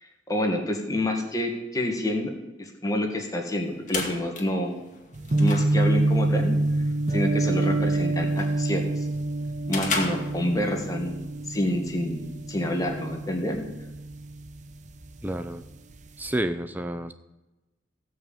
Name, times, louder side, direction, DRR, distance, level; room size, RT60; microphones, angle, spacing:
voice 1, 0.0-4.8 5.4-6.6 7.1-9.1 9.7-11.2 11.5-13.6, left 1 dB, 20° left, 2 dB, 2.1 m, -28 dB
sound 1, 3.5-11.0, left 3 dB, 45° left, 2.0 m, -36 dB
sound 2, 5.1-15.2 15.5-16.3, right 2 dB, 40° right, 0.9 m, -27 dB
voice 2, 15.2-15.6 16.2-17.1, right 1 dB, 10° right, 10 dB, 0.5 m, -29 dB
16.0 x 5.5 x 8.7 m, 1.1 s
head